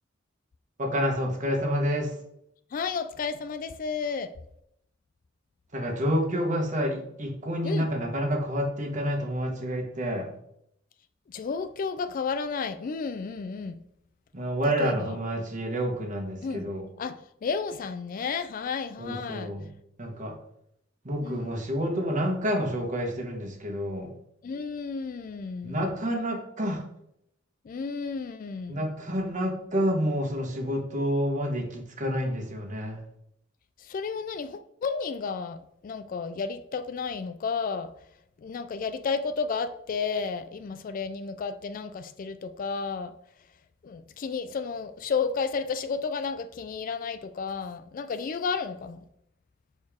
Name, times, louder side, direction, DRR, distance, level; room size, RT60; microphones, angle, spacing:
voice 1, 0.8-2.1 5.7-10.3 14.3-16.8 19.0-19.7 20.0-20.3 21.0-24.1 25.6-26.8 28.7-33.0, equal, 40° right, 1.3 m, -29 dB
voice 2, 2.7-4.3 7.6-7.9 11.3-13.8 14.8-15.2 16.4-16.7 17.0-19.5 21.2-21.6 24.4-25.9 27.6-28.9 33.8-37.9 38.4-43.1 43.8-49.0, left 5 dB, 45° left, 0.3 m, -32 dB
6.7 x 4.2 x 3.6 m
head